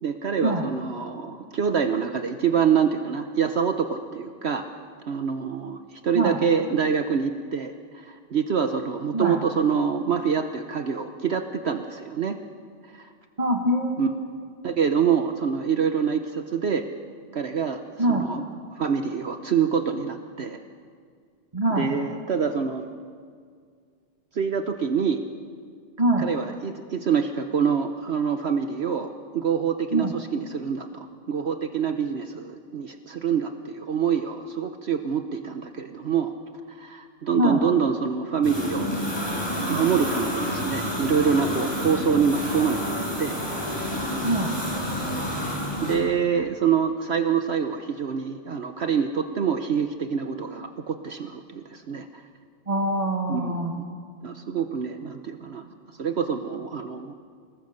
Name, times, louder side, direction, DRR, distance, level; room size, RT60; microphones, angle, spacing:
voice 1, 0.0-4.6 5.1-12.4 12.9-13.1 14.0-14.1 14.6-16.9 17.3-18.4 18.7-20.6 21.7-22.9 24.3-25.2 26.2-36.3 36.7-38.9 39.7-42.9 43.2-43.4 45.8-52.2 53.3-53.8 54.2-55.7 56.0-57.1, right 7 dB, 60° right, 7 dB, 1.1 m, -26 dB
voice 2, 13.4-14.3 18.0-18.2 21.5-21.9 26.0-26.3 29.9-30.1 37.3-37.6 44.2-44.5 52.7-53.7, right 1 dB, 30° right, 2 dB, 1.7 m, -24 dB
sound 1, 38.4-46.0, equal, 20° left, 5.4 m, -29 dB
28.5 x 19.5 x 6.6 m, 2.1 s
omnidirectional pair, 1.3 m